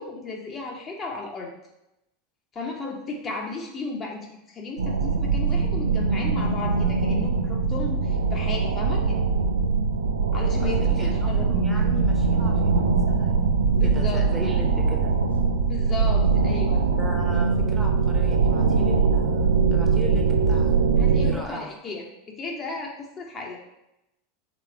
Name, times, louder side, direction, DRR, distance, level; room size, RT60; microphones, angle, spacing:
voice 1, 0.0-1.5 2.5-9.2 10.3-11.5 13.7-14.5 15.7-16.8 21.0-23.6, left 3 dB, 30° left, -1 dB, 0.8 m, -35 dB
sound 1, 4.8-21.3, right 4 dB, 75° right, 0.4 m, -22 dB
voice 2, 10.6-13.5 13.8-15.1 16.9-20.9 21.2-21.7, right 2 dB, 5° right, 0 dB, 0.8 m, -37 dB
3.7 x 3.1 x 4.4 m, 0.86 s
figure-of-eight pair, 80°, 0 cm